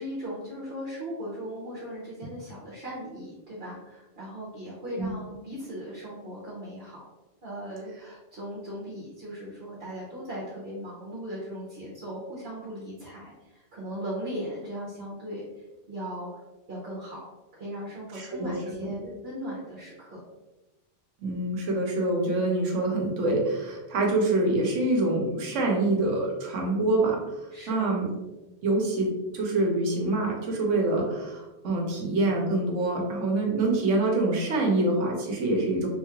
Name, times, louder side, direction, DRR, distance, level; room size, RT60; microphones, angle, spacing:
voice 1, 0.0-7.0 7.4-15.5 15.9-16.3 16.7-17.2 17.5-20.2 27.5-27.9, equal, 60° right, -6 dB, 1.1 m, -38 dB
voice 2, 18.1-18.5 18.8-18.9 21.2-27.2 27.7-28.1 28.6-35.9, right 2 dB, 90° right, 0 dB, 1.1 m, -26 dB
3.5 x 3.1 x 2.4 m, 1.1 s
omnidirectional pair, 1.2 m